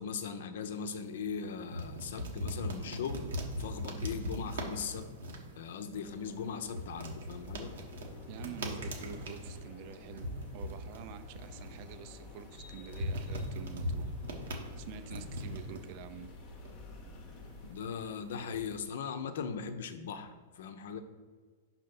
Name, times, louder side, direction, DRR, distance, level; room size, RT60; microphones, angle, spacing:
voice 1, 0.0-3.3 3.6-5.1 5.5-7.7 17.6-21.0, left 6 dB, 70° left, 9 dB, 0.7 m, -39 dB
sound 1, 0.6-18.9, equal, 80° right, 1.3 m, -41 dB
sound 2, 5.9-17.8, left 3 dB, 40° left, 0.8 m, -51 dB
voice 2, 8.3-14.1 14.8-16.3, right 8 dB, 50° right, 10 dB, 0.5 m, -47 dB
5.3 x 4.3 x 6.0 m, 1.5 s
hypercardioid pair, 115°, 0 cm